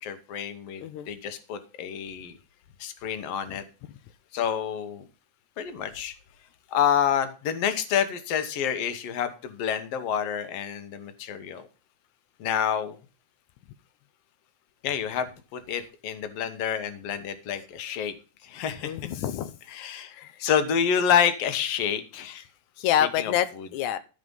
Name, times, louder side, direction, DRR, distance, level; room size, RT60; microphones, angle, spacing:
voice 1, 0.0-2.4 2.8-3.6 4.3-5.0 5.6-6.1 6.7-11.7 12.4-13.0 14.8-18.1 18.4-19.1 19.7-20.1 20.4-22.4 23.2-23.7, left 8 dB, 65° left, 10 dB, 1.9 m, -28 dB
voice 2, 18.8-19.5 20.1-20.4 22.8-23.5 23.7-24.0, left 10 dB, 85° left, 12 dB, 2.0 m, -26 dB
13.5 x 5.0 x 5.4 m, 0.34 s
omnidirectional pair, 3.4 m